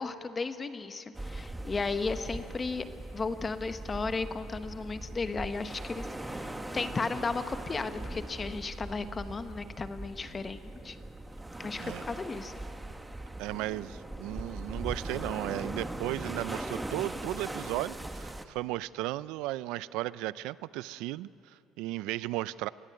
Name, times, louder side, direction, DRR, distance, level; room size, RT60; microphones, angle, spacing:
voice 1, 0.0-2.9 3.1-11.0 11.6-12.5, left 4 dB, 25° left, 10 dB, 1.1 m, -35 dB
sound 1, 1.1-18.4, right 1 dB, 10° right, 1.1 m, -40 dB
voice 2, 13.4-22.7, right 17 dB, 85° right, 18 dB, 0.4 m, -35 dB
22.0 x 14.5 x 9.5 m, 2.7 s
cardioid pair, 115°, 0 cm